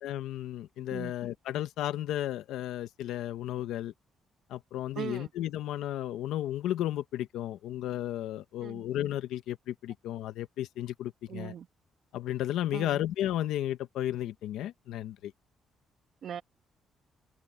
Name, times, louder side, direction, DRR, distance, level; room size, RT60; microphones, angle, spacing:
voice 1, 0.0-3.9 4.5-11.5 12.1-15.3, left 12 dB, 85° left, 1.2 m, -33 dB
voice 2, 4.9-5.3 8.6-8.9 11.3-11.7 12.7-13.0 16.2-16.4, right 8 dB, 65° right, 1.5 m, -39 dB
cardioid pair, 90°, 0 cm